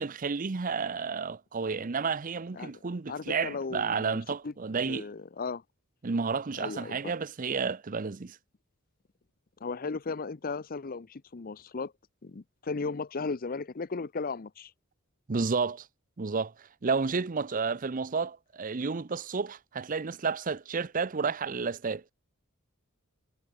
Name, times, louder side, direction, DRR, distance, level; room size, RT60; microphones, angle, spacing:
voice 1, 0.0-5.1 6.0-8.4 15.3-15.9 16.2-22.1, right 5 dB, 40° right, 0.6 m, -31 dB
voice 2, 3.1-4.2 4.4-4.5 4.9-5.6 6.6-7.1 9.6-11.9 12.2-14.7, left 4 dB, 40° left, 0.6 m, -36 dB
head